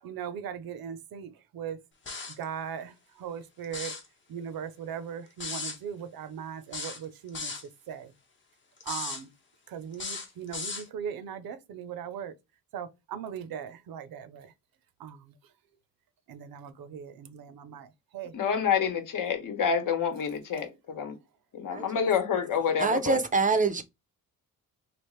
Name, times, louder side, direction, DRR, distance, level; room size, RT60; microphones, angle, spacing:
voice 1, 0.0-1.8 2.3-4.0 4.3-7.5 7.9-8.1 8.8-9.3 9.7-12.3 12.7-14.5 15.0-15.3 16.3-18.3, right 8 dB, 80° right, 0.6 m, -39 dB
sound 1, 2.1-2.4 3.6-4.1 5.4-5.8 6.7-7.7 8.8-9.2 9.9-10.9, left 4 dB, 35° left, 0.8 m, -36 dB
voice 2, 18.3-21.2 21.5-23.2, left 7 dB, 65° left, 1.0 m, -28 dB
voice 3, 22.8-23.8, right 4 dB, 25° right, 0.4 m, -25 dB
3.3 x 2.5 x 3.0 m
cardioid pair, 110°, 35 cm